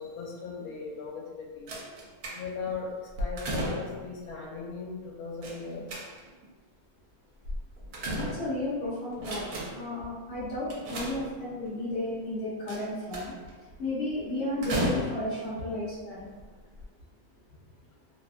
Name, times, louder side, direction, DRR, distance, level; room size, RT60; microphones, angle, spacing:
voice 1, 0.0-1.7 2.3-6.0, left 5 dB, 80° left, -1 dB, 1.1 m, -38 dB
sound 1, 1.7-2.7 3.1-4.1 5.4-6.4 7.5-8.7 9.1-9.9 10.7-11.7 12.7-13.5 14.6-15.5 16.3-16.4 16.8-16.9, right 1 dB, 75° right, 1.0 m, -34 dB
voice 2, 8.1-9.5 9.7-13.3 13.8-16.3, left 1 dB, 60° left, -9 dB, 0.8 m, -33 dB
2.7 x 2.2 x 2.4 m, 1.4 s
omnidirectional pair, 1.6 m